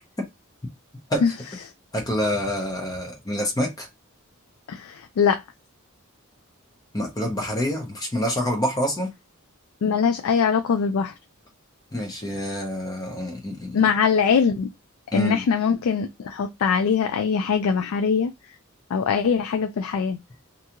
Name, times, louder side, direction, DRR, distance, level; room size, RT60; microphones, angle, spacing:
voice 1, 1.9-3.9 6.9-9.1 11.9-13.9 15.1-15.4, equal, 20° left, 0.6 m, -27 dB
voice 2, 4.7-5.4 9.8-11.1 13.7-14.7 15.1-18.3 18.9-20.2, left 6 dB, 90° left, 0.4 m, -22 dB
2.5 x 2.3 x 2.8 m
head